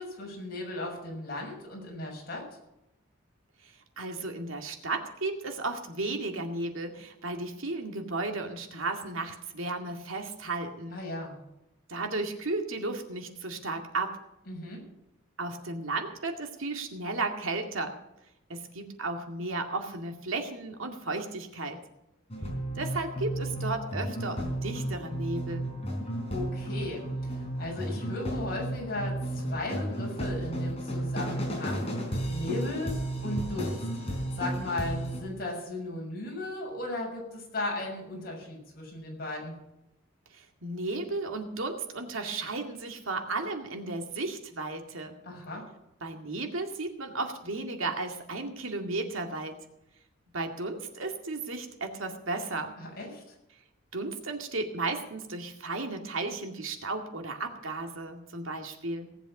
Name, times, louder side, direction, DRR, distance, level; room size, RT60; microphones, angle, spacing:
voice 1, 0.0-2.4 10.9-11.4 14.5-14.8 26.3-31.9 32.3-32.9 33.2-33.8 34.4-39.6 45.2-45.7 52.8-53.2, left 2 dB, 50° left, -1 dB, 6.5 m, -36 dB
voice 2, 3.6-11.0 11.9-14.2 15.4-18.0 18.5-21.8 22.8-25.7 40.3-45.2 46.0-49.6 50.3-52.7 53.9-59.1, right 3 dB, 90° right, 4 dB, 2.2 m, -34 dB
sound 1, 22.3-35.2, right 1 dB, 30° left, 4.0 m, -33 dB
18.0 x 8.0 x 6.5 m, 0.88 s
head